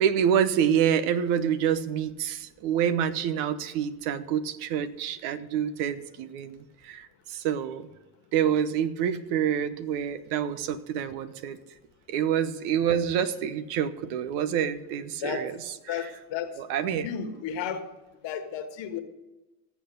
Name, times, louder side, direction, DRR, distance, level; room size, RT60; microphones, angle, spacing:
voice 1, 0.0-7.9 8.3-11.6 12.1-15.5 16.6-17.1, right 9 dB, 80° right, 12 dB, 1.0 m, -27 dB
voice 2, 15.9-16.5 16.9-17.8 18.2-19.0, left 8 dB, 70° left, 8 dB, 1.6 m, -33 dB
18.0 x 7.2 x 5.3 m, 1.1 s
hypercardioid pair, 65°, 46 cm